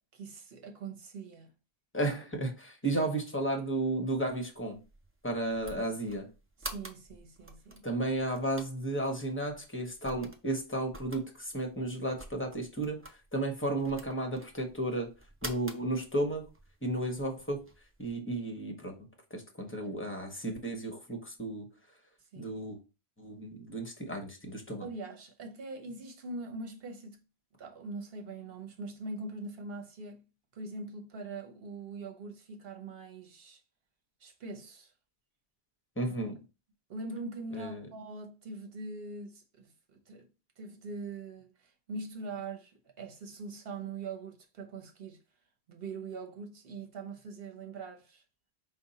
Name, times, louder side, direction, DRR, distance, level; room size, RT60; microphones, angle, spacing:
voice 1, 0.0-1.5 2.9-3.0 5.8-6.0 6.6-7.8 22.3-22.6 24.8-27.2 27.6-30.2 30.5-33.6 34.2-34.9 36.9-40.3 40.6-45.2 45.7-48.2, right 3 dB, 65° right, 1.1 m, -42 dB
voice 2, 1.9-4.8 5.2-6.3 7.8-15.1 15.4-16.5 16.8-17.6 18.0-19.0 19.3-21.7 22.4-22.8 23.2-24.9 36.0-36.4 37.5-37.9, right 1 dB, 15° left, 0.8 m, -33 dB
sound 1, 4.3-18.1, right 1 dB, 20° right, 0.4 m, -49 dB
5.1 x 2.2 x 4.0 m
omnidirectional pair, 1.0 m